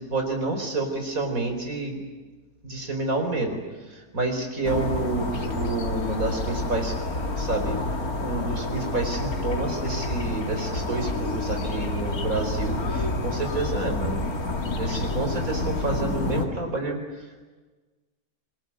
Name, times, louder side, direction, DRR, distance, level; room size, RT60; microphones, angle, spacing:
voice 1, 0.0-2.0 2.6-6.9 7.4-7.8 8.2-14.2 14.8-17.3, right 2 dB, 70° right, 4 dB, 4.8 m, -29 dB
sound 1, 4.6-16.5, left 2 dB, 80° left, 2.9 m, -29 dB
25.5 x 22.0 x 9.8 m, 1.3 s
omnidirectional pair, 1.5 m